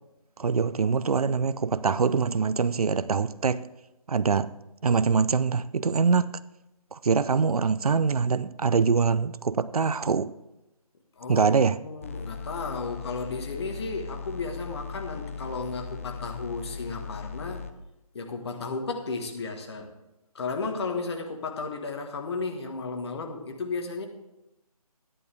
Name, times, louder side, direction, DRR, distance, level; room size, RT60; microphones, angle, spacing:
voice 1, 0.4-3.7 4.1-4.5 4.8-6.4 6.9-10.3 11.3-11.8, right 5 dB, 75° right, 0.6 m, -24 dB
voice 2, 11.2-17.6 18.1-19.9 20.3-24.1, left 4 dB, 45° left, 1.6 m, -34 dB
sound 1, 12.0-17.7, left 6 dB, 20° left, 0.4 m, -38 dB
12.5 x 11.0 x 3.4 m
figure-of-eight pair, 155°, 19 cm